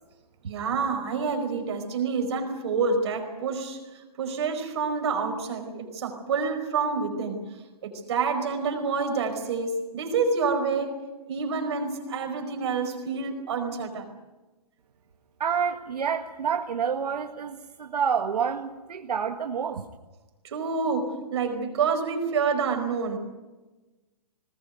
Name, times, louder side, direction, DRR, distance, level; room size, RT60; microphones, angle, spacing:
voice 1, 0.5-7.4 7.8-11.0 11.3-14.1 20.4-23.2, right 5 dB, 45° right, 4 dB, 4.9 m, -28 dB
voice 2, 15.4-19.8, right 7 dB, 75° right, 5 dB, 1.7 m, -28 dB
21.0 x 19.5 x 9.4 m, 1.2 s
hypercardioid pair, 180°, 20 cm